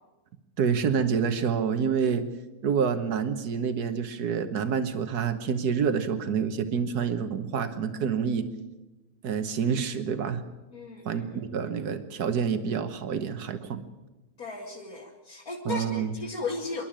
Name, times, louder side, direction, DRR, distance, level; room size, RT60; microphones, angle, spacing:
voice 1, 0.6-2.3 2.6-8.5 9.2-10.4 11.0-13.8 15.6-16.1, right 6 dB, 85° right, 9 dB, 1.7 m, -27 dB
voice 2, 10.7-11.4 14.4-16.9, left 3 dB, 70° left, -3 dB, 2.9 m, -36 dB
26.0 x 12.0 x 8.9 m, 1.1 s
omnidirectional pair, 1.6 m